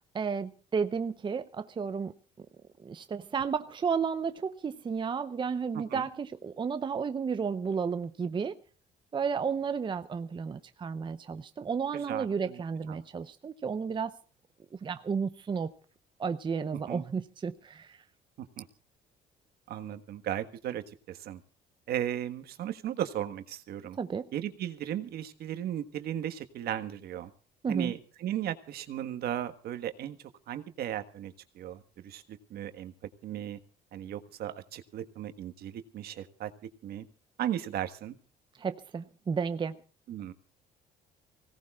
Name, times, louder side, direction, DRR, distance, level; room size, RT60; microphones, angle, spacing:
voice 1, 0.1-2.1 2.4-2.5 2.8-8.6 9.1-14.2 14.8-15.7 16.2-18.0 24.0-24.3 27.6-27.9 38.6-39.8, right 6 dB, 30° right, 0.7 m, -32 dB
voice 2, 5.7-6.1 11.9-12.6 12.9-13.0 16.7-17.0 18.4-18.6 19.7-21.4 21.9-24.0 24.3-27.3 27.7-30.2 30.5-32.9 33.2-33.6 33.9-36.5 36.8-37.0 37.4-38.2 40.1-40.3, right 11 dB, 65° right, 1.5 m, -36 dB
25.0 x 17.5 x 2.4 m
cardioid pair, 110°, 17 cm